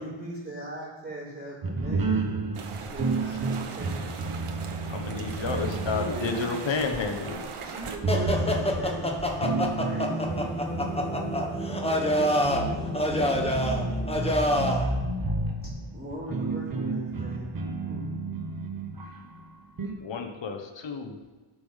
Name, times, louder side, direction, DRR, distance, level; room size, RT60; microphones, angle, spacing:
voice 1, 0.0-4.1 5.2-6.5 7.6-10.4 14.9-15.1 15.9-17.5 17.8-18.1, right 1 dB, 20° right, -6 dB, 3.9 m, -39 dB
sound 1, 1.6-6.6 6.9-7.0 7.8-19.9, right 3 dB, 45° right, 1.3 m, -31 dB
sound 2, 2.5-8.0, right 5 dB, 85° right, 1.2 m, -39 dB
voice 2, 4.9-7.4 20.0-21.2, left 5 dB, 60° left, 5 dB, 1.3 m, -31 dB
voice 3, 6.1-7.5 9.8-11.2 11.9-13.2, right 1 dB, 80° left, -7 dB, 3.0 m, -44 dB
sound 3, 8.1-14.9, equal, 10° left, 1.1 m, -27 dB
12.0 x 6.9 x 5.7 m, 1.3 s
wide cardioid pair, 165°, 49 cm